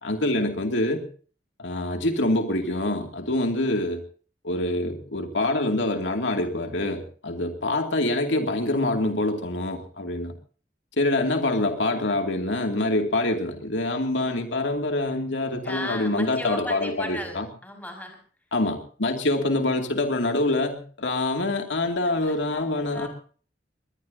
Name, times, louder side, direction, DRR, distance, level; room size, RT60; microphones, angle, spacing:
voice 1, 0.0-1.0 1.6-4.0 4.4-10.3 11.0-17.5 18.5-23.1, left 2 dB, 80° left, 4 dB, 2.5 m, -25 dB
voice 2, 15.6-18.2 22.0-23.1, left 1 dB, 10° left, 3 dB, 5.7 m, -36 dB
21.5 x 21.0 x 2.8 m, 0.41 s
head